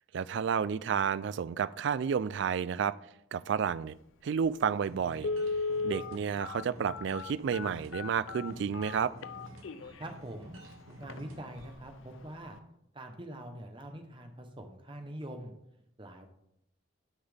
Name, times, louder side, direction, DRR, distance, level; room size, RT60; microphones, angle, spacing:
voice 1, 0.1-2.9 3.3-3.9 4.2-5.3 5.8-9.1, right 7 dB, 60° right, 17 dB, 0.3 m, -31 dB
Telephone, 4.4-4.5 5.2-10.0 10.6-10.7 11.0-11.2 11.6-11.9 12.2-12.3, left 3 dB, 75° left, 0.5 m, -36 dB
sound 1, 4.8-11.7, right 1 dB, 85° right, 1.7 m, -51 dB
voice 2, 10.0-10.6 11.0-12.6 12.9-15.5 16.0-16.3, right 1 dB, 25° right, 5 dB, 1.0 m, -44 dB
11.5 x 5.5 x 3.5 m, 0.78 s
head